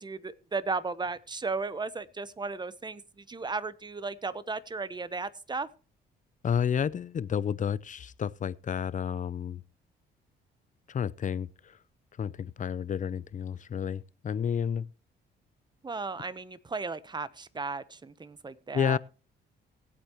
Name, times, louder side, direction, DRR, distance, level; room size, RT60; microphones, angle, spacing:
voice 1, 0.0-5.7 15.8-19.0, right 4 dB, 20° right, 0.9 m, -35 dB
voice 2, 6.4-9.6 10.9-11.7 12.2-14.9 18.7-19.0, left 8 dB, 40° left, 0.6 m, -31 dB
19.0 x 8.3 x 3.0 m
cardioid pair, 90°, 20 cm